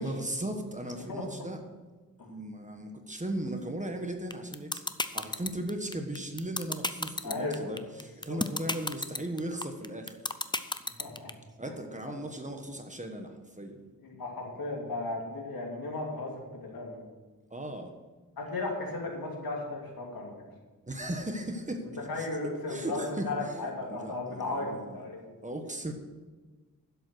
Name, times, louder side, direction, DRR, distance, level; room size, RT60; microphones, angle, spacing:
voice 1, 0.0-1.6 2.3-4.8 5.1-10.2 11.6-13.8 17.5-17.9 20.9-21.8 22.2-25.0 25.4-25.9, right 1 dB, 20° right, 4 dB, 1.3 m, -37 dB
voice 2, 1.0-1.5 2.2-2.3 7.2-7.8 8.3-8.4 11.0-11.3 11.7-11.8 14.0-16.3 16.6-17.0 18.4-20.4 22.1-25.3, left 2 dB, 90° left, -1 dB, 2.8 m, -35 dB
sound 1, 4.3-11.3, left 2 dB, 15° left, 0.5 m, -31 dB
11.5 x 7.9 x 6.3 m, 1.3 s
wide cardioid pair, 115°, 34 cm